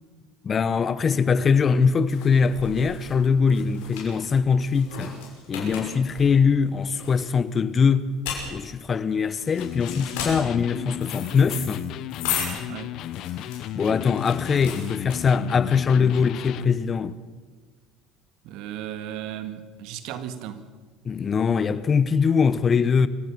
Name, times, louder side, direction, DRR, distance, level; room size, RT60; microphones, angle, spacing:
voice 1, 0.4-5.1 5.5-8.1 8.5-11.8 13.8-17.2 21.0-23.1, left 5 dB, 35° left, 1.1 m, -22 dB
sound 1, 1.3-15.7, left 7 dB, 80° left, 6.0 m, -36 dB
Electric guitar, 9.6-16.9, left 12 dB, 60° left, 0.8 m, -34 dB
voice 2, 18.4-20.7 23.0-23.1, right 11 dB, 70° right, 1.8 m, -36 dB
26.0 x 15.5 x 6.3 m
hypercardioid pair, 75°, 0 cm